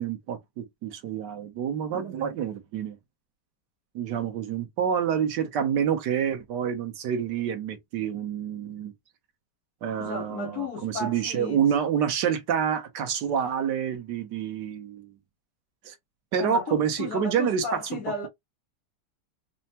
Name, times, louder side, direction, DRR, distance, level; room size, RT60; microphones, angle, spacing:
voice 1, 0.0-3.0 3.9-8.9 9.8-15.1 15.8-15.9 16.3-17.8, right 8 dB, 85° right, 1.5 m, -28 dB
voice 2, 10.0-11.7 16.4-18.3, left 3 dB, 65° left, 1.5 m, -34 dB
5.5 x 2.1 x 2.8 m
omnidirectional pair, 1.8 m